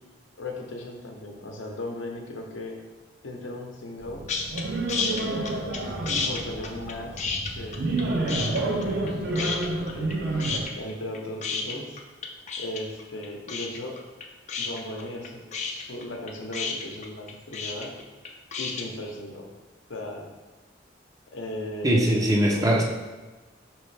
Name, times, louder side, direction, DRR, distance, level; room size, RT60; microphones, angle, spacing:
voice 1, 0.4-2.8 3.2-4.3 4.9-5.9 6.2-7.2 7.6-10.4 10.8-12.0 12.6-14.0 14.6-17.9 18.6-19.5 19.9-20.3 21.3-22.7, left 1 dB, 85° left, 1 dB, 0.7 m, -37 dB
sound 1, 4.0-10.6, right 2 dB, 55° right, 0.7 m, -29 dB
sound 2, 4.3-4.6 4.9-5.8 6.1-8.0 8.3-9.1 9.4-10.1 10.4-18.8, left 5 dB, 40° left, 0.4 m, -31 dB
voice 2, 21.8-22.8, right 1 dB, 20° right, 0 dB, 0.5 m, -21 dB
5.2 x 3.1 x 3.3 m, 1.2 s
head